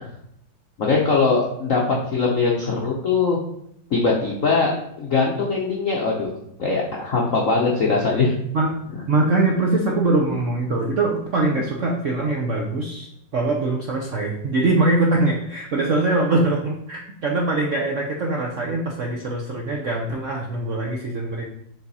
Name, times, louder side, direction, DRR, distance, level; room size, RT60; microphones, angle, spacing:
voice 1, 0.8-3.4 3.9-6.3 6.6-8.3, left 4 dB, 55° left, -3 dB, 1.0 m, -21 dB
voice 2, 9.1-13.1 13.3-21.5, right 2 dB, 75° right, 0 dB, 0.7 m, -22 dB
7.1 x 4.0 x 4.1 m, 0.75 s
omnidirectional pair, 2.3 m